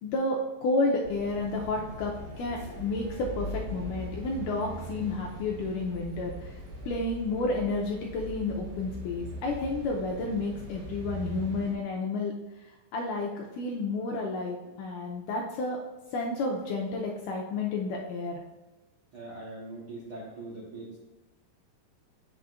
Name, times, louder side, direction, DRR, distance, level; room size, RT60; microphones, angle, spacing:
voice 1, 0.0-6.6 6.9-12.3 12.9-15.8 16.1-18.4, left 2 dB, 80° left, -1 dB, 1.9 m, -31 dB
sound 1, 1.0-11.7, right 1 dB, 85° right, 3.4 m, -41 dB
voice 2, 19.1-21.0, right 2 dB, 70° right, -6 dB, 1.3 m, -41 dB
8.7 x 5.8 x 2.4 m, 1.1 s
omnidirectional pair, 4.2 m